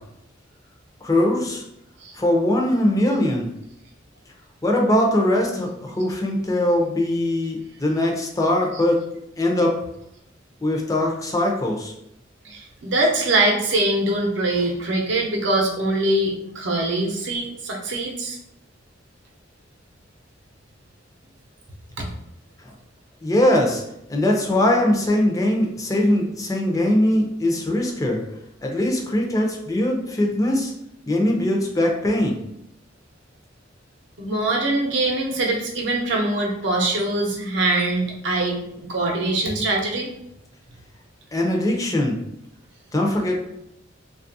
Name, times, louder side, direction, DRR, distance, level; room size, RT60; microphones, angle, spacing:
voice 1, 1.0-1.6 2.1-3.5 4.6-9.0 9.4-9.8 10.6-11.9 22.6-22.7 23.2-23.8 24.1-28.2 28.6-30.7 31.1-32.4 41.3-42.2 42.9-43.4, left 1 dB, 20° left, 0 dB, 0.5 m, -21 dB
voice 2, 12.4-18.4 22.0-22.1 34.2-40.1 43.2-43.3, right 2 dB, 70° right, 0 dB, 0.7 m, -23 dB
3.2 x 2.3 x 2.6 m, 0.79 s
head